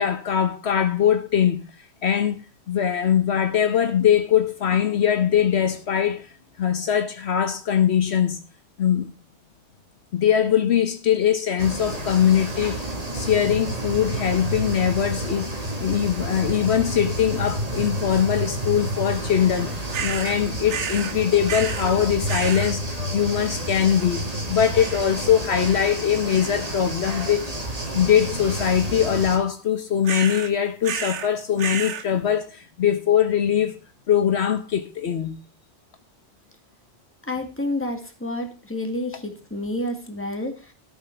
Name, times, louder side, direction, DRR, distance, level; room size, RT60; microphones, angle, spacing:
voice 1, 0.0-1.6 2.0-2.4 2.7-6.3 6.6-8.4 8.8-9.1 10.1-15.5 15.8-27.5 27.9-33.8 34.1-35.4, left 9 dB, 70° left, 1.2 m, -22 dB
sound 1, 11.6-29.4, right 1 dB, 35° right, 2.1 m, -30 dB
sound 2, 19.9-20.4 20.7-21.2 21.5-21.9 22.3-22.7 24.8-25.2 25.5-25.9 26.3-26.7 27.1-27.5 30.0-30.5 30.8-31.3 31.6-32.1, right 8 dB, 80° right, 1.2 m, -32 dB
voice 2, 37.3-40.7, left 1 dB, 10° left, 2.1 m, -29 dB
13.0 x 5.9 x 5.7 m
omnidirectional pair, 1.2 m